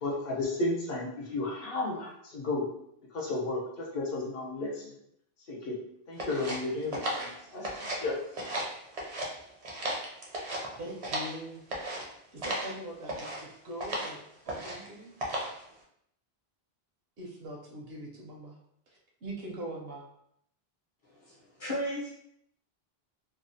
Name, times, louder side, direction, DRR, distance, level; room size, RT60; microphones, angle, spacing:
voice 1, 0.0-2.7 3.1-4.9 5.5-5.8 6.1-7.7 8.0-8.2, left 2 dB, 70° left, -2 dB, 0.9 m, -33 dB
sound 1, 6.2-8.1 8.3-9.3 9.6-11.4 11.7-12.0 12.4-12.7 13.1-13.4 13.8-14.1 14.5-14.9 15.2-15.6, right 1 dB, 45° right, 0.5 m, -35 dB
voice 2, 10.8-11.6 12.3-14.2 14.5-15.1 17.2-18.6 18.9-20.0, right 1 dB, 75° right, -1 dB, 0.8 m, -42 dB
voice 3, 21.1-22.1, equal, 40° left, -5 dB, 0.7 m, -35 dB
2.7 x 2.0 x 2.6 m, 0.74 s
omnidirectional pair, 1.1 m